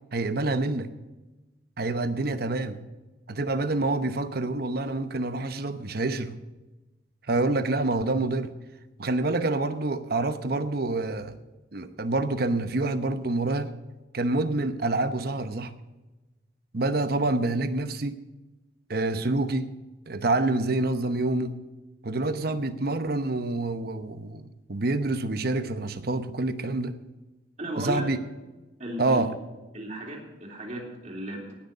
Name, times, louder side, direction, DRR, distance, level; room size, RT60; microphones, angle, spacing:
voice 1, 0.1-0.9 1.8-2.8 3.3-6.4 7.3-8.5 9.0-11.4 11.7-13.7 14.1-15.7 16.7-18.1 18.9-19.7 20.1-21.6 22.0-27.0 27.8-28.2 29.0-29.3, right 2 dB, 60° right, 10 dB, 0.9 m, -27 dB
voice 2, 27.6-28.1 28.8-29.3 29.7-31.5, right 1 dB, 40° right, -1 dB, 3.6 m, -35 dB
18.5 x 6.6 x 6.7 m, 1.1 s
head